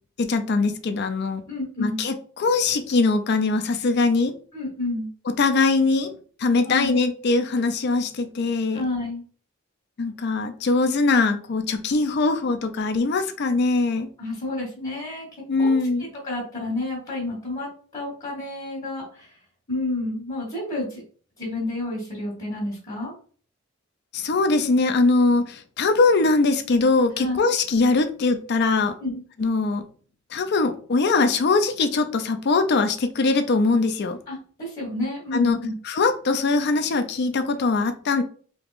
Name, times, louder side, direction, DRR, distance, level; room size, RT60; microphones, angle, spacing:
voice 1, 0.2-1.4 1.8-4.3 5.4-6.1 6.4-8.8 10.0-14.1 15.5-16.1 24.1-29.0 29.4-29.8 30.3-34.2 35.3-35.6 35.9-38.2, left 3 dB, 55° left, 8 dB, 0.4 m, -21 dB
voice 2, 1.5-2.0 4.5-5.1 6.6-7.0 8.7-9.2 14.2-15.3 15.6-19.4 19.7-21.0 21.4-23.1 27.2-27.4 29.0-29.2 34.3-35.7, left 2 dB, 35° left, -5 dB, 1.3 m, -30 dB
3.5 x 3.0 x 2.4 m, 0.43 s
head